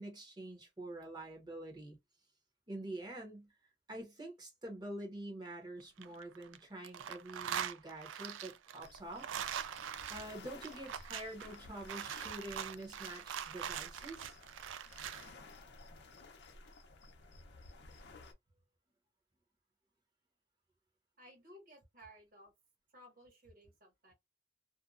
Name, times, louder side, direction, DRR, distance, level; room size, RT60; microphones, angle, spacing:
voice 1, 0.0-2.0 2.7-3.5 3.9-9.3 10.1-14.4, right 1 dB, 20° right, 0.9 m, -46 dB
sound 1, 5.8-6.6 6.8-15.3, right 9 dB, 85° right, 0.3 m, -42 dB
sound 2, 8.8-18.3, left 3 dB, 65° left, 0.6 m, -55 dB
voice 2, 21.2-22.5 22.9-24.1, equal, 50° right, 1.5 m, -58 dB
2.6 x 2.2 x 2.4 m
head